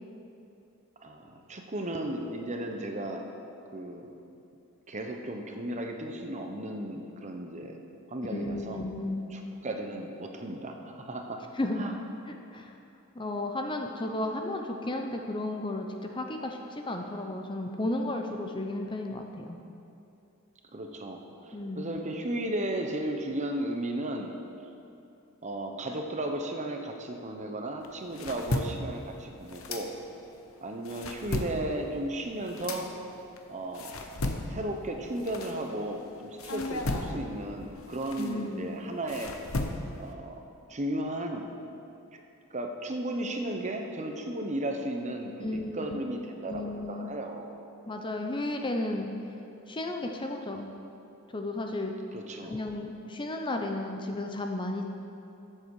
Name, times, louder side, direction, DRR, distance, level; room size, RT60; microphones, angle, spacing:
voice 1, 1.0-3.3 3.7-4.1 4.9-7.8 8.1-8.8 9.3-11.4 11.8-11.9 20.7-24.4 25.4-29.9 30.6-32.9 33.5-34.0 34.5-39.3 40.0-40.4 40.7-41.5 42.1-42.2 42.5-47.5 52.1-52.6, right 1 dB, 35° right, 3 dB, 0.9 m, -35 dB
voice 2, 8.1-9.3 11.6-11.8 12.3-12.7 13.1-19.6 21.5-22.0 38.2-38.6 45.4-46.0 46.5-47.1 47.9-49.1 49.7-50.7 51.3-51.9 52.5-54.8, left 2 dB, 25° left, 3 dB, 0.7 m, -33 dB
sound 1, 27.8-30.3 30.7-36.0 36.4-40.1, left 2 dB, 70° left, 0.9 m, -36 dB
14.0 x 7.7 x 4.8 m, 2.7 s
head